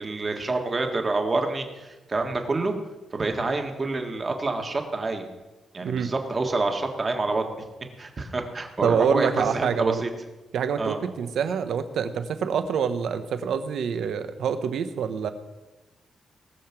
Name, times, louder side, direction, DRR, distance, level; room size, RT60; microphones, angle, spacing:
voice 1, 0.0-2.7 3.1-5.3 5.7-7.4 8.0-10.1 10.8-11.0, right 3 dB, 25° right, 4 dB, 1.6 m, -27 dB
voice 2, 5.8-6.1 8.8-10.0 10.5-15.3, right 7 dB, 75° right, 10 dB, 1.0 m, -26 dB
18.5 x 6.8 x 6.0 m, 1.1 s
wide cardioid pair, 145°, 0 cm